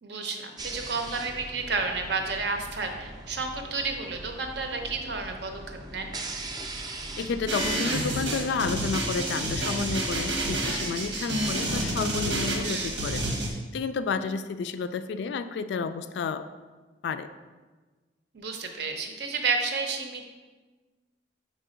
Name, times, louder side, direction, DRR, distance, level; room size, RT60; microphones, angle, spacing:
voice 1, 0.0-6.1 12.6-12.9 18.3-20.2, right 4 dB, 65° right, 4 dB, 0.7 m, -31 dB
sound 1, 0.6-13.3, right 1 dB, 25° right, 0.4 m, -42 dB
voice 2, 7.2-13.3 13.7-16.5 17.0-17.3, left 5 dB, 65° left, 11 dB, 0.3 m, -31 dB
sound 2, 7.5-13.5, right 1 dB, 85° right, 1.1 m, -29 dB
4.5 x 4.2 x 4.9 m, 1.3 s
head